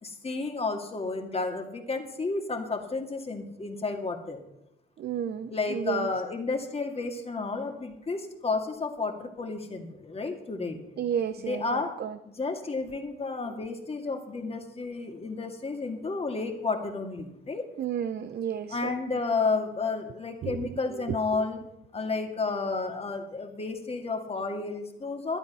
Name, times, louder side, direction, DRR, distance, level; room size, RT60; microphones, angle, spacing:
voice 1, 0.0-4.4 5.5-10.8 11.5-11.9 12.3-17.7 18.7-21.6 21.9-25.4, left 3 dB, 30° left, 4 dB, 2.1 m, -31 dB
voice 2, 5.0-6.1 11.0-12.2 13.6-13.7 17.8-18.9 20.4-21.4, right 8 dB, 55° right, 12 dB, 0.6 m, -33 dB
12.0 x 11.5 x 5.6 m, 0.85 s
cardioid pair, 90°, 20 cm